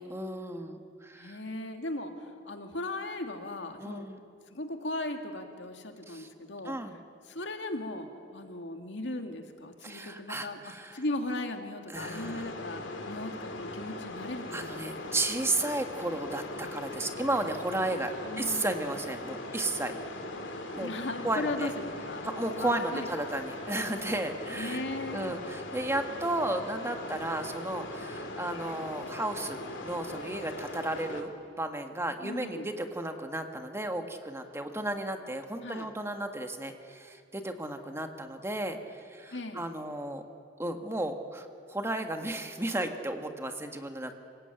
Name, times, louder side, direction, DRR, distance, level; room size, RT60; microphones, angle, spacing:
voice 1, 0.0-1.4 3.8-4.2 6.1-6.3 6.6-6.9 9.8-11.0 11.9-12.5 14.5-19.9 20.7-20.9 21.2-21.7 22.2-24.8 25.1-31.3 31.6-40.2 40.6-44.1, right 1 dB, 15° right, 5 dB, 1.6 m, -34 dB
voice 2, 1.2-4.1 4.5-6.8 7.3-8.1 8.3-14.8 18.3-18.8 20.8-23.1 24.6-25.3 32.2-32.7 35.6-35.9 39.3-39.6, left 2 dB, 70° left, 5 dB, 2.2 m, -37 dB
sound 1, 12.0-31.2, left 2 dB, 85° left, 2.9 m, -40 dB
27.0 x 17.5 x 9.0 m, 2.3 s
head